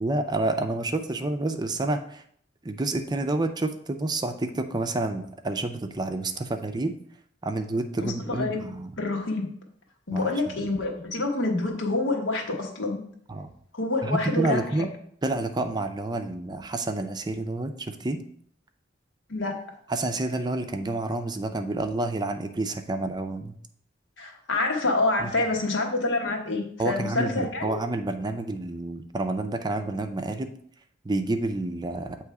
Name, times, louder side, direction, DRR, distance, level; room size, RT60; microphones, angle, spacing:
voice 1, 0.0-2.2 2.6-6.9 7.4-8.9 10.1-10.6 13.3-13.5 14.0-14.9 15.2-18.2 19.9-23.6 25.2-25.3 26.8-30.5 31.0-32.2, right 2 dB, 20° right, 7 dB, 0.5 m, -29 dB
voice 2, 8.0-8.6 9.0-9.5 10.1-13.0 13.7-14.6 19.3-19.6 24.2-27.8, left 2 dB, 85° left, 1 dB, 1.3 m, -27 dB
8.0 x 3.1 x 4.7 m, 0.63 s
head